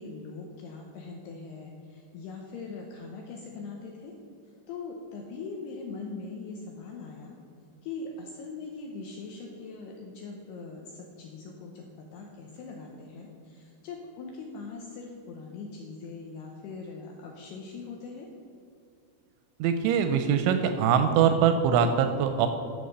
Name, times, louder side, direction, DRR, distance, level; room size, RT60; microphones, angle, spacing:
voice 1, 0.0-4.1 4.7-7.4 7.8-11.9 12.1-18.3, left 4 dB, 80° left, 1 dB, 2.4 m, -41 dB
voice 2, 19.6-22.5, right 7 dB, 85° right, 8 dB, 2.7 m, -23 dB
13.5 x 5.0 x 6.6 m, 2.6 s
omnidirectional pair, 5.7 m